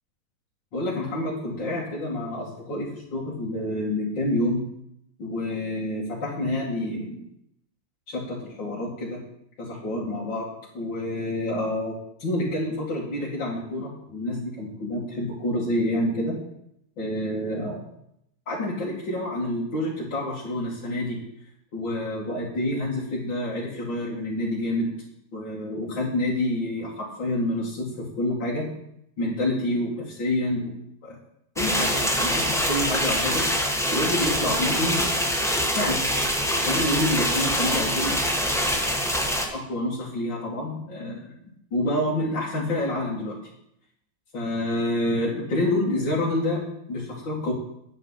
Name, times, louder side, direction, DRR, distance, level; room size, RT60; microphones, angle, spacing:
voice 1, 0.7-4.7 5.2-7.2 8.1-9.2 9.6-10.5 10.7-16.4 17.0-17.8 18.5-21.2 21.7-24.9 25.3-28.7 29.2-30.8 31.0-31.2 31.6-33.5 33.9-35.0 35.8-36.0 36.6-38.9 39.5-41.3 41.7-43.5 44.3-47.5, left 1 dB, 90° left, -6 dB, 3.1 m, -28 dB
sound 1, 31.6-39.5, equal, ahead, 1.2 m, -24 dB
11.0 x 9.0 x 5.7 m, 0.76 s
omnidirectional pair, 2.0 m